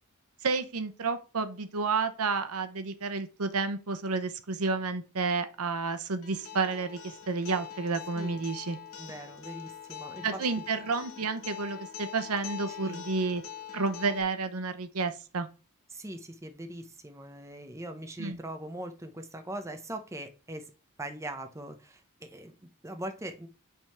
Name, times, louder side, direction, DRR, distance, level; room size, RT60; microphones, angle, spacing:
voice 1, 0.4-7.0 7.3-8.8 10.2-13.4 13.7-15.5 18.2-18.4, right 4 dB, 80° right, 9 dB, 0.8 m, -30 dB
Acoustic guitar, 6.2-14.2, left 9 dB, 70° left, 1.1 m, -44 dB
voice 2, 8.1-8.5 9.0-10.4 12.7-13.0 15.9-20.7 21.0-23.5, right 1 dB, 15° right, 6 dB, 0.7 m, -41 dB
5.7 x 3.6 x 5.7 m, 0.33 s
head